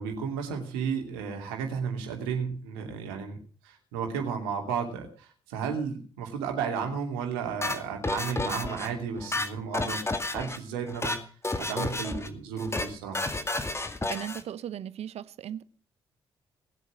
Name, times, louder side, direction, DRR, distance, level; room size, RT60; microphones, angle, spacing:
voice 1, 0.0-11.3 11.6-13.2, right 6 dB, 80° right, 2.7 m, -33 dB
Non-Stop, 7.6-8.9 9.2-10.6 10.9-11.2 11.4-12.3 12.6-12.9 13.1-14.4, left 2 dB, 20° left, 2.1 m, -31 dB
voice 2, 14.1-15.6, right 10 dB, 60° right, 0.9 m, -37 dB
19.0 x 8.0 x 6.2 m
hypercardioid pair, 40°, 12 cm